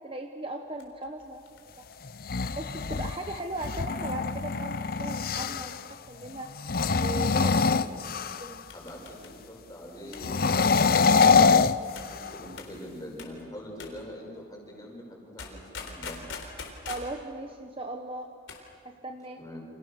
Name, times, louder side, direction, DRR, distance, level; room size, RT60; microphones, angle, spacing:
voice 1, 0.0-1.9 2.6-6.5 6.9-7.6 7.9-8.0 8.4-8.6 16.9-18.3 18.8-19.4, right 2 dB, 30° right, 4 dB, 1.2 m, -38 dB
sound 1, 0.7-4.1 5.0-5.4 5.7-5.8 6.2-6.6 7.8-8.0 8.7-9.4 10.1-11.0 12.0-12.2 12.6-12.8 13.2-13.4 13.8-14.0 15.4-17.2 18.3-18.7 18.9-19.0, left 4 dB, 75° left, 3.9 m, -44 dB
sound 2, 2.1-5.8 6.6-8.6 10.2-12.5, left 5 dB, 50° left, 0.6 m, -24 dB
voice 2, 7.2-7.7 8.7-11.6 12.0-16.2 19.4-19.6, equal, 20° left, -1 dB, 6.0 m, -43 dB
Bass guitar, 10.3-14.1, left 1 dB, 75° right, 7.1 m, -54 dB
29.5 x 27.5 x 6.6 m, 2.3 s
head